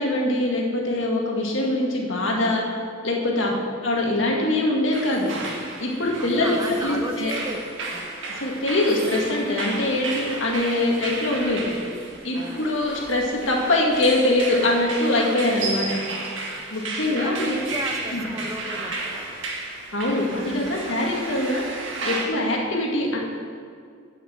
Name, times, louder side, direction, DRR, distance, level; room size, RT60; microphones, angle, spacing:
voice 1, 0.0-2.6 3.0-3.5 3.8-5.3 5.8-7.3 8.4-11.7 12.2-15.9 16.7-17.5 18.1-18.2 19.9-21.6 22.0-23.2, left 1 dB, 75° left, -2 dB, 2.0 m, -23 dB
sound 1, 4.9-22.3, right 3 dB, 70° right, 1.7 m, -33 dB
voice 2, 6.2-8.1 10.9-11.0 12.3-12.6 16.5-16.6 17.1-19.3 20.2-20.4 20.8-21.0, right 1 dB, 20° right, 2 dB, 0.9 m, -35 dB
9.7 x 6.5 x 7.5 m, 2.2 s
head